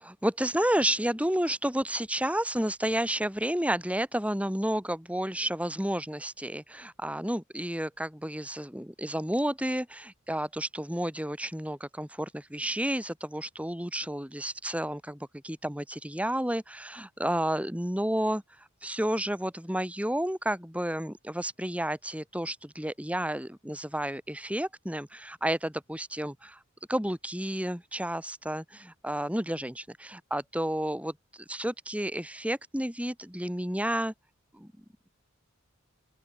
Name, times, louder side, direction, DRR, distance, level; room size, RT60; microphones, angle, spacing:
voice 1, 0.0-18.4 18.8-26.6 26.9-31.2 31.5-34.1 34.5-34.7, right 1 dB, 5° right, 5.8 m, -31 dB
open air
head